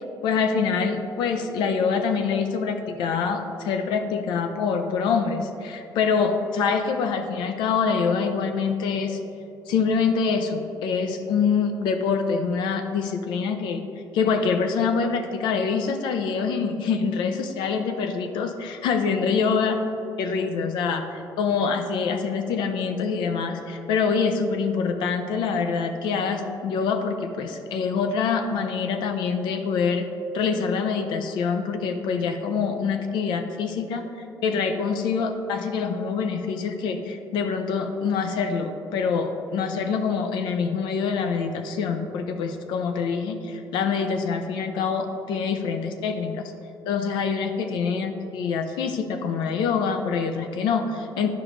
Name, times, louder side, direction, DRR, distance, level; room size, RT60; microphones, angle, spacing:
voice 1, 0.2-9.2 9.7-13.8 14.1-19.8 20.2-30.0 30.3-34.1 34.4-46.5 46.9-51.3, left 5 dB, 90° left, 6 dB, 0.6 m, -25 dB
11.5 x 5.0 x 3.2 m, 2.8 s
cardioid pair, 160°, 8 cm